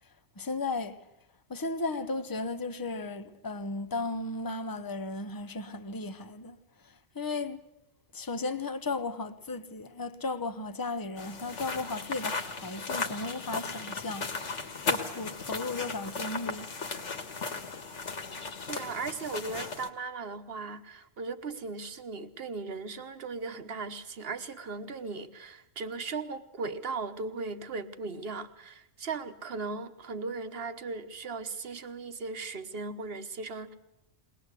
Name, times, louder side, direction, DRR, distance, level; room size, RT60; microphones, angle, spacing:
voice 1, 0.4-1.0 1.5-6.6 6.8-7.6 8.1-14.3 14.6-16.7, left 3 dB, 20° left, 0.7 m, -35 dB
sound 1, 11.2-19.9, left 4 dB, 65° left, 1.9 m, -36 dB
voice 2, 18.7-33.7, right 4 dB, 50° right, 1.4 m, -37 dB
21.5 x 19.5 x 8.3 m
omnidirectional pair, 1.3 m